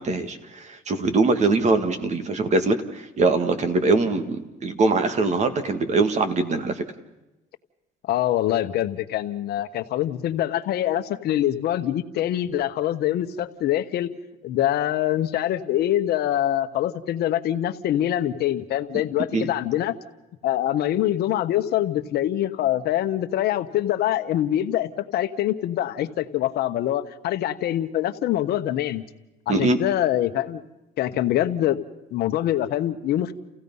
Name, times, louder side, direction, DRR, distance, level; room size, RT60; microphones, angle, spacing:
voice 1, 0.0-6.9 19.3-19.5 29.5-29.8, right 3 dB, 45° right, 8 dB, 2.0 m, -22 dB
voice 2, 8.0-14.1 14.4-19.9 20.4-29.0 29.5-30.6 31.0-31.8 32.1-33.3, left 12 dB, 70° left, 8 dB, 1.2 m, -24 dB
29.5 x 16.0 x 5.5 m, 0.97 s
cardioid pair, 110°, 17 cm